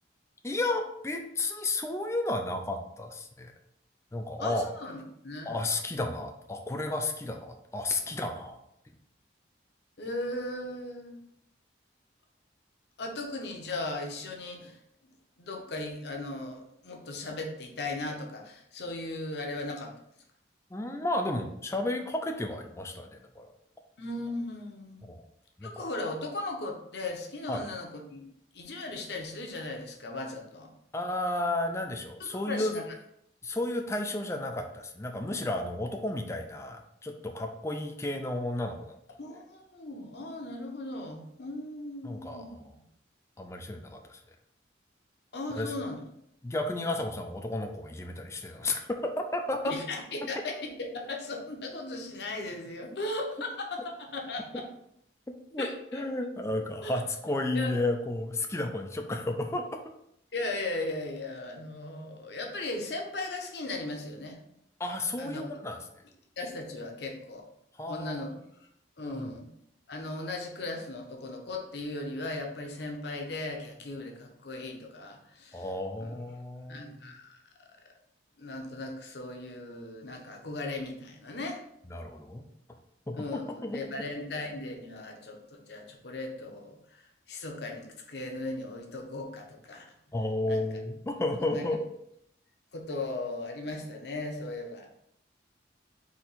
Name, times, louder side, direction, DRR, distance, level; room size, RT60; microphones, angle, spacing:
voice 1, 0.4-3.5 4.1-4.6 5.4-8.6 20.7-23.5 25.1-25.2 25.6-25.9 27.5-27.7 30.9-32.8 33.4-39.0 42.0-42.7 43.4-44.2 45.5-45.7 46.4-49.7 55.5-59.6 64.8-65.8 67.8-68.2 69.0-69.3 75.5-77.1 81.9-82.4 83.1-83.8 90.1-91.8, left 2 dB, 15° left, 4 dB, 0.4 m, -32 dB
voice 2, 4.4-5.6 10.0-11.2 13.0-14.8 15.4-19.9 24.0-25.1 25.6-28.2 28.5-30.7 32.2-32.9 39.2-42.6 45.3-46.0 49.6-54.7 55.6-56.0 56.8-56.9 57.5-57.7 60.3-64.4 65.2-65.5 66.4-67.5 67.9-68.3 69.0-69.5 69.9-75.6 76.0-76.1 76.7-77.4 78.4-81.6 83.2-87.0 87.3-89.8 90.5-90.6 91.4-91.6 92.7-95.0, left 2 dB, 65° left, 2 dB, 0.8 m, -37 dB
4.2 x 2.9 x 4.1 m, 0.74 s
head